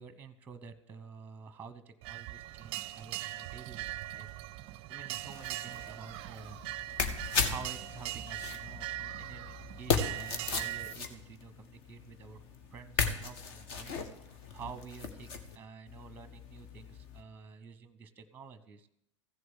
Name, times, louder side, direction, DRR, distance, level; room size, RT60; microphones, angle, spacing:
voice 1, 0.0-4.3 4.9-6.6 7.3-12.4 12.7-13.9 14.5-18.9, right 6 dB, 10° right, 13 dB, 1.0 m, -49 dB
sound 1, 2.0-10.9, right 16 dB, 35° right, 0.5 m, -41 dB
sound 2, 5.1-15.6 15.9-17.2, left 5 dB, 50° left, 1.6 m, -37 dB
15.0 x 7.8 x 8.1 m, 0.76 s
figure-of-eight pair, 90°, 16 cm